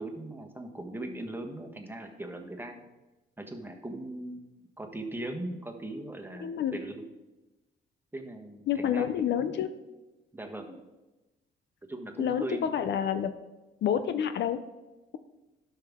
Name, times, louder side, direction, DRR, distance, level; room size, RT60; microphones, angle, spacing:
voice 1, 0.0-2.8 3.4-4.4 4.8-7.0 8.1-9.5 10.3-10.9 11.9-12.7, right 1 dB, 10° right, 4 dB, 1.3 m, -39 dB
voice 2, 6.4-6.8 8.7-9.7 12.2-13.3 13.8-14.6, left 9 dB, 65° left, 11 dB, 0.6 m, -28 dB
11.5 x 5.8 x 3.6 m, 1.1 s
cardioid pair, 90°, 20 cm